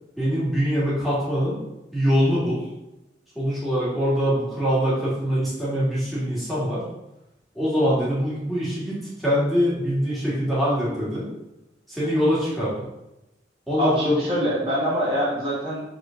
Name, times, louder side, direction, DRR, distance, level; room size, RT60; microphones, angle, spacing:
voice 1, 0.2-1.6 1.9-2.6 3.4-6.8 7.6-11.3 11.9-12.7 13.7-14.2, equal, ahead, -9 dB, 2.4 m, -23 dB
voice 2, 13.8-15.8, equal, 30° right, -9 dB, 1.7 m, -24 dB
5.0 x 4.3 x 5.9 m, 0.93 s
head